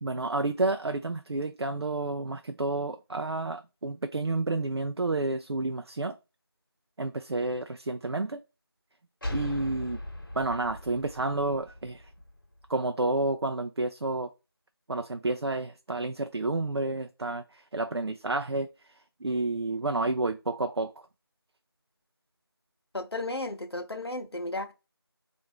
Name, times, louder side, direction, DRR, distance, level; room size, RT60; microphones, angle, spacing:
voice 1, 0.0-6.2 7.0-8.4 9.3-10.0 10.3-12.1 12.7-14.3 14.9-21.1, right 2 dB, 80° right, 0.4 m, -30 dB
sound 1, 9.2-12.7, left 1 dB, 60° left, 1.1 m, -39 dB
voice 2, 22.9-24.7, left 2 dB, 75° left, 0.8 m, -34 dB
3.6 x 2.6 x 4.4 m
figure-of-eight pair, 175°, 13 cm